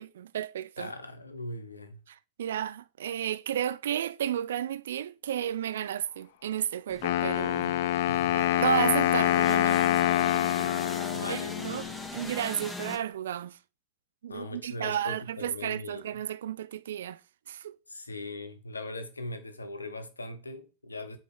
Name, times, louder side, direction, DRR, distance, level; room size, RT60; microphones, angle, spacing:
voice 1, 0.0-0.9 2.1-7.8 8.3-9.8 10.2-10.3 11.3-11.9 12.1-13.6 14.2-17.2 17.5-17.8, right 10 dB, 60° right, 0.3 m, -32 dB
voice 2, 0.8-2.0 8.1-8.4 11.1-11.7 14.3-16.2 17.9-21.2, left 2 dB, 80° left, 0.9 m, -40 dB
sound 1, 6.9-13.0, left 2 dB, 10° left, 0.9 m, -41 dB
Wind instrument woodwind instrument, 7.0-12.0, left 12 dB, 55° left, 0.3 m, -26 dB
8.6 x 3.0 x 5.0 m
figure-of-eight pair, 90°, 0 cm